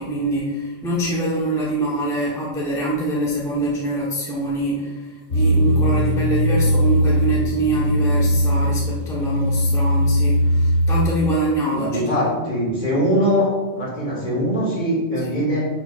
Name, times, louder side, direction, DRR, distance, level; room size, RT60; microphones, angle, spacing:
voice 1, 0.0-12.5 15.3-15.4, right 1 dB, 5° left, -6 dB, 1.0 m, -24 dB
sound 1, 5.3-11.0, equal, 85° left, 1.5 m, -19 dB
voice 2, 11.7-13.5 13.8-15.6, equal, 40° left, -6 dB, 2.3 m, -21 dB
10.0 x 4.5 x 2.5 m, 1.3 s
omnidirectional pair, 1.2 m